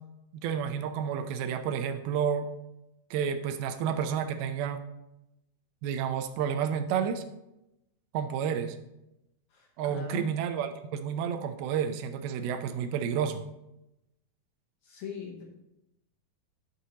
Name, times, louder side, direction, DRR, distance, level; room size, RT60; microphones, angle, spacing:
voice 1, 0.3-2.5 3.1-4.8 5.8-7.2 8.1-8.8 9.8-13.4, right 8 dB, 90° right, 9 dB, 2.6 m, -30 dB
voice 2, 9.5-10.3 14.8-15.4, left 6 dB, 65° left, -1 dB, 2.0 m, -41 dB
12.0 x 6.3 x 2.9 m, 0.90 s
omnidirectional pair, 4.3 m